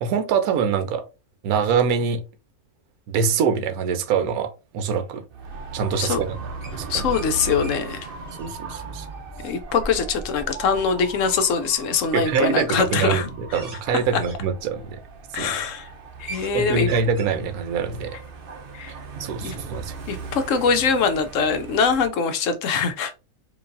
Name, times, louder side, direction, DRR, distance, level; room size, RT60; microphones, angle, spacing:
voice 1, 0.0-1.0 1.4-2.2 3.1-5.2 5.7-6.4 6.8-7.1 8.4-9.1 12.1-15.0 15.4-15.5 16.5-18.2 19.2-19.9, right 6 dB, 75° right, 1.1 m, -24 dB
Dog / Motorcycle, 5.3-22.1, right 4 dB, 50° right, 0.7 m, -38 dB
sound 1, 6.6-7.3 7.6-7.8 8.1-8.5 10.7-10.8 12.3-12.5 12.8-14.4 15.1-15.3 15.7-15.8 16.0-16.5 16.8-17.3, right 3 dB, 25° right, 1.7 m, -41 dB
voice 2, 6.9-8.1 9.4-13.6 15.3-15.9 16.2-16.9 18.7-18.9 19.4-19.6 20.1-23.1, left 5 dB, 65° left, 0.8 m, -23 dB
4.6 x 2.6 x 2.5 m
omnidirectional pair, 1.6 m